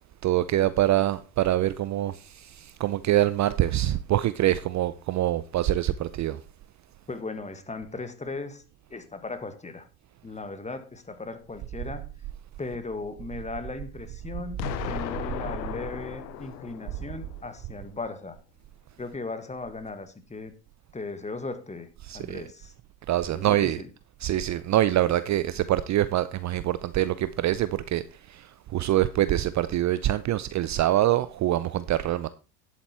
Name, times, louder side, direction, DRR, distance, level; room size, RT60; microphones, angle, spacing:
voice 1, 0.2-6.4 22.0-22.4 23.1-23.8 24.2-32.3, right 13 dB, 35° right, 0.6 m, -25 dB
voice 2, 7.1-8.6 8.9-9.9 10.2-12.1 12.6-18.4 19.0-20.5 20.9-21.9 22.1-22.7 23.3-23.9, left 3 dB, 15° left, 1.7 m, -37 dB
Explosion, 14.6-17.6, left 12 dB, 90° left, 1.0 m, -36 dB
11.0 x 8.2 x 4.4 m
hypercardioid pair, 85°, 49 cm